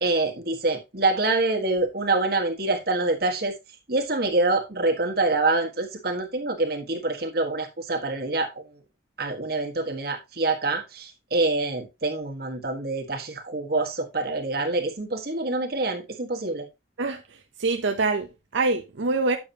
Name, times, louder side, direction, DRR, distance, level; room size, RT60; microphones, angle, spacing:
voice 1, 0.0-3.5 3.9-8.6 9.2-16.7, right 2 dB, 55° right, 1.5 m, -26 dB
voice 2, 17.6-19.4, right 3 dB, 80° right, 0.7 m, -25 dB
8.7 x 6.9 x 2.8 m
head